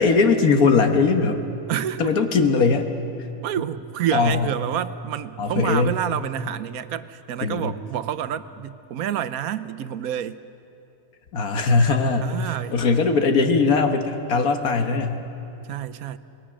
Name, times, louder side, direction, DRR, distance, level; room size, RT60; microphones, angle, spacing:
voice 1, 0.0-1.4 2.0-2.9 4.1-4.5 5.4-5.9 7.4-7.7 11.3-12.3 12.7-15.2, left 4 dB, 80° left, 6 dB, 1.8 m, -20 dB
voice 2, 1.7-2.1 3.4-10.4 12.2-13.0 15.7-16.2, right 10 dB, 80° right, 11 dB, 1.2 m, -28 dB
27.0 x 20.0 x 6.3 m, 2.8 s
omnidirectional pair, 1.5 m